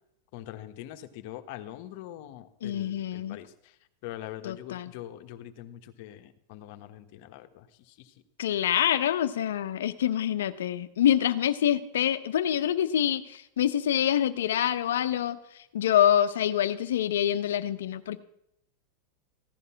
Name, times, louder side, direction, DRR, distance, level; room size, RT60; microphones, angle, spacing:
voice 1, 0.3-8.2, left 13 dB, 60° left, 8 dB, 1.4 m, -43 dB
voice 2, 2.6-3.4 4.4-4.9 8.4-15.4 15.7-18.2, left 10 dB, 85° left, 11 dB, 1.0 m, -26 dB
15.5 x 11.0 x 5.8 m, 0.78 s
supercardioid pair, 125°, 0 cm